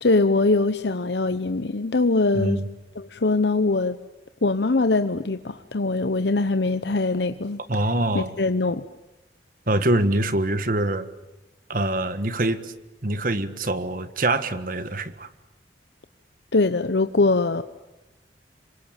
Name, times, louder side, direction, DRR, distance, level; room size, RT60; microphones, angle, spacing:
voice 1, 0.0-2.6 3.0-4.0 4.4-7.6 8.1-8.8 16.5-17.6, left 3 dB, 70° left, 10 dB, 0.9 m, -22 dB
voice 2, 2.3-2.7 7.7-8.3 9.7-11.1 11.7-12.7 13.0-15.3, right 1 dB, 50° right, 12 dB, 1.5 m, -24 dB
27.0 x 23.5 x 9.0 m, 1.0 s
head